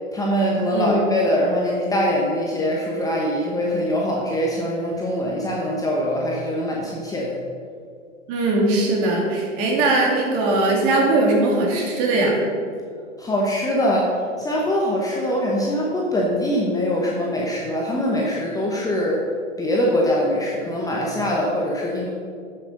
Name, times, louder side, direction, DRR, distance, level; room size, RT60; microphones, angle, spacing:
voice 1, 0.1-7.3 13.2-19.2 19.6-22.1, equal, 10° left, -3 dB, 0.9 m, -23 dB
voice 2, 8.3-12.4, right 2 dB, 35° right, -1 dB, 2.5 m, -20 dB
9.6 x 6.6 x 5.3 m, 2.2 s
hypercardioid pair, 120°, 39 cm